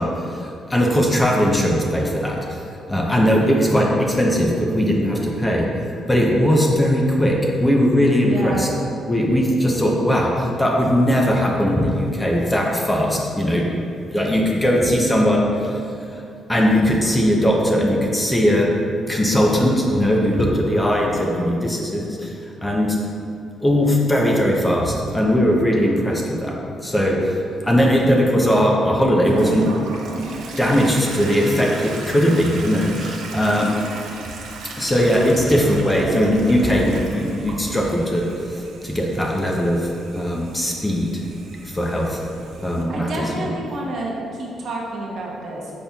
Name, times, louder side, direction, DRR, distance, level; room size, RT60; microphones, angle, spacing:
voice 1, 0.0-2.6 2.9-5.7 6.1-8.7 9.1-13.8 14.1-15.8 16.1-16.2 16.5-18.7 19.1-22.3 22.6-23.0 23.6-26.5 26.8-27.3 27.6-29.7 30.6-33.8 34.7-38.2 38.5-39.9 40.1-41.2 41.6-42.2 42.6-43.3, equal, 15° left, -1 dB, 0.6 m, -19 dB
voice 2, 8.2-8.7 42.9-45.7, right 1 dB, 60° right, -3 dB, 0.9 m, -29 dB
Toilet flush, 29.2-42.8, right 2 dB, 80° right, 0.5 m, -34 dB
5.4 x 4.1 x 2.3 m, 2.5 s
cardioid pair, 90°, 0 cm